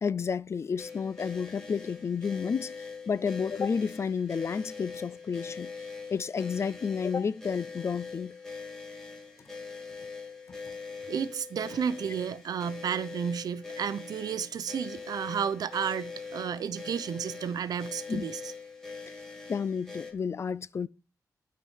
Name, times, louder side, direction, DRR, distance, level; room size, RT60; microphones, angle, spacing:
voice 1, 0.0-5.7 6.1-8.4 10.5-10.6 18.1-18.3 19.5-20.9, left 6 dB, 45° left, 0.4 m, -31 dB
sound 1, 0.8-20.1, left 4 dB, 5° left, 2.5 m, -43 dB
voice 2, 11.1-18.4, right 7 dB, 80° right, 0.7 m, -32 dB
12.0 x 4.8 x 5.5 m
wide cardioid pair, 110°, 7 cm